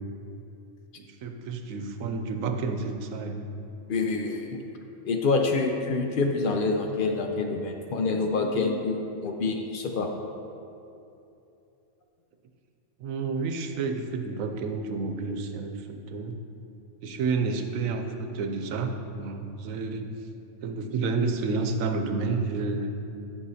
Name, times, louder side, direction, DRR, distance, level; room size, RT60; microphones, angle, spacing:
voice 1, 1.0-3.4 13.0-16.4 17.0-20.1 20.6-22.9, right 4 dB, 90° right, 5 dB, 1.0 m, -30 dB
voice 2, 3.9-4.6 5.0-10.1, left 3 dB, 55° left, 3 dB, 0.6 m, -27 dB
11.0 x 5.6 x 2.8 m, 2.8 s
omnidirectional pair, 1.3 m